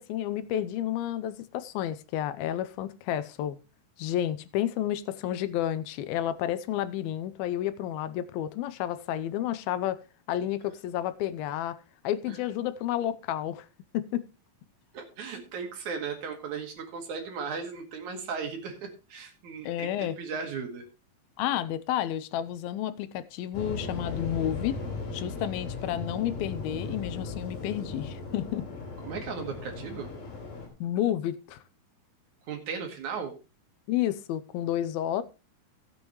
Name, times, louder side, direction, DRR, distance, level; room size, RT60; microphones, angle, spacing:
voice 1, 0.0-3.6 4.0-10.0 10.3-11.8 12.0-13.7 13.9-14.3 19.6-20.2 21.4-24.8 25.1-28.6 30.8-31.6 33.9-35.2, left 11 dB, 85° left, 2.6 m, -31 dB
voice 2, 14.9-20.9 29.0-30.1 32.5-33.3, right 5 dB, 60° right, 3.3 m, -36 dB
Waves surf, 23.5-30.7, left 4 dB, 60° left, 4.8 m, -37 dB
16.0 x 8.2 x 3.0 m
omnidirectional pair, 4.2 m